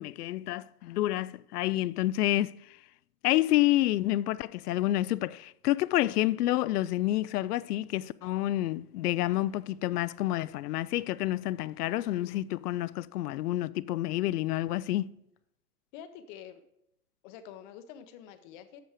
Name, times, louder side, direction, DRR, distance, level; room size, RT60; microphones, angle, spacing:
voice 1, 0.0-2.8 3.2-15.1, left 15 dB, 80° left, 0.5 m, -29 dB
voice 2, 15.9-16.6 17.2-18.8, left 9 dB, 35° left, 0.6 m, -47 dB
8.1 x 6.2 x 4.8 m
hypercardioid pair, 140°, 46 cm